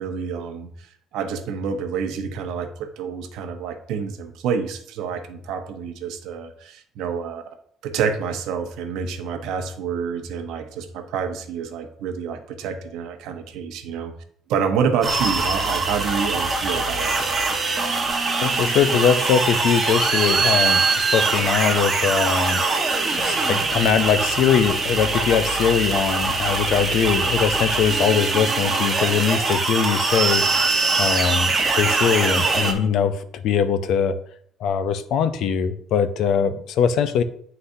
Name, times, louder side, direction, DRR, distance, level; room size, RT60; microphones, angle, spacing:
voice 1, 0.0-7.4 7.8-14.1 14.5-17.4, right 6 dB, 85° right, 6 dB, 0.8 m, -28 dB
sound 1, 15.0-32.7, right 3 dB, 25° right, 1.0 m, -22 dB
voice 2, 18.4-22.6 23.1-34.2 34.6-37.2, left 7 dB, 70° left, 12 dB, 0.5 m, -22 dB
9.7 x 3.9 x 2.7 m, 0.63 s
cardioid pair, 130°, 0 cm